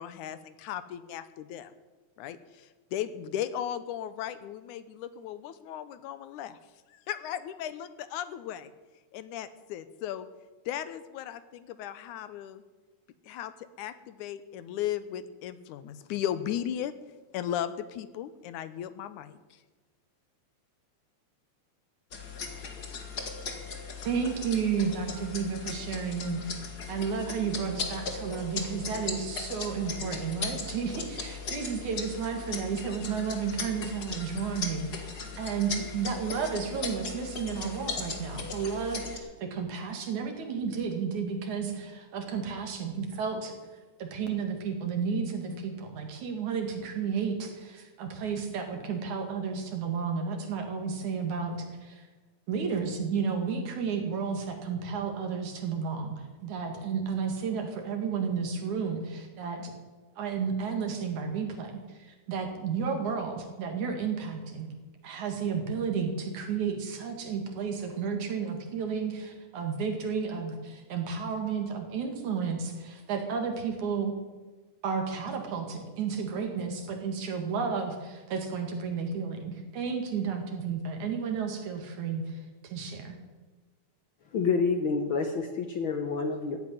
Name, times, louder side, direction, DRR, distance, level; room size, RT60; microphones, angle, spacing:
voice 1, 0.0-1.7 2.2-6.6 6.9-8.7 9.1-10.3 10.7-12.6 13.2-16.9 17.3-19.6, left 10 dB, 85° left, 13 dB, 2.3 m, -36 dB
sound 1, 22.1-39.2, left 5 dB, 40° left, 1.9 m, -38 dB
voice 2, 24.0-26.6 26.9-43.5 44.0-52.1 52.5-59.7 60.2-64.7 65.0-74.1 74.8-83.2, right 6 dB, 75° right, 4 dB, 3.6 m, -32 dB
voice 3, 84.3-86.6, left 4 dB, 60° left, 6 dB, 1.3 m, -28 dB
14.5 x 8.8 x 9.9 m, 1.3 s
omnidirectional pair, 3.4 m